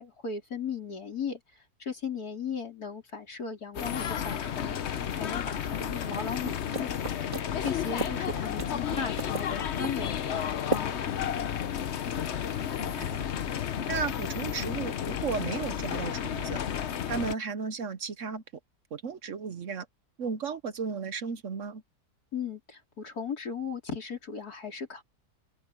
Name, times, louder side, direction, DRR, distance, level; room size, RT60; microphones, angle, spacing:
voice 1, 0.0-6.9 7.2-7.3 7.6-11.1 22.3-25.0, left 6 dB, 75° left, 4.4 m, -37 dB
sound 1, 3.7-17.3, left 9 dB, 55° left, 0.9 m, -32 dB
sound 2, 5.8-11.3, right 2 dB, 20° right, 2.8 m, -38 dB
voice 2, 12.5-13.2 13.9-16.6 17.1-18.4 18.9-19.9 20.2-21.8, right 5 dB, 55° right, 1.1 m, -34 dB
open air
omnidirectional pair, 1.7 m